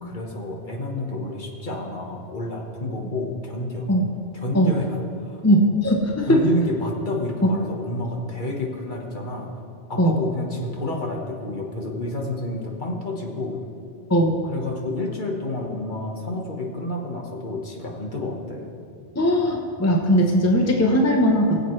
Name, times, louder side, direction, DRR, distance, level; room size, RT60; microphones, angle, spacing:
voice 1, 0.0-3.9 4.3-5.4 6.3-9.5 9.9-13.7 14.4-18.7, left 2 dB, 50° left, 0 dB, 1.4 m, -29 dB
voice 2, 5.4-6.4 10.0-10.2 14.1-14.4 19.2-21.6, equal, 15° left, 2 dB, 0.9 m, -19 dB
21.0 x 7.9 x 3.2 m, 2.6 s
omnidirectional pair, 1.1 m